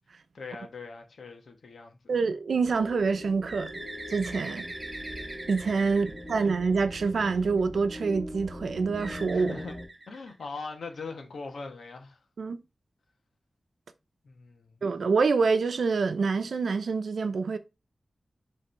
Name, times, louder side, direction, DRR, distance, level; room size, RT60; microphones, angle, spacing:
voice 1, 0.3-2.2 5.9-6.1 9.3-9.8 10.1-12.2 14.2-14.8, left 4 dB, 85° left, 1.4 m, -41 dB
voice 2, 2.1-3.8 4.1-4.7 5.5-9.6 12.4-12.6 14.8-17.6, right 4 dB, 80° right, 0.7 m, -26 dB
sound 1, 2.6-9.9, equal, 10° left, 1.8 m, -41 dB
Bird, 3.5-7.2 9.0-10.7, right 2 dB, 25° right, 1.0 m, -42 dB
6.8 x 3.6 x 4.5 m
wide cardioid pair, 125°, 0 cm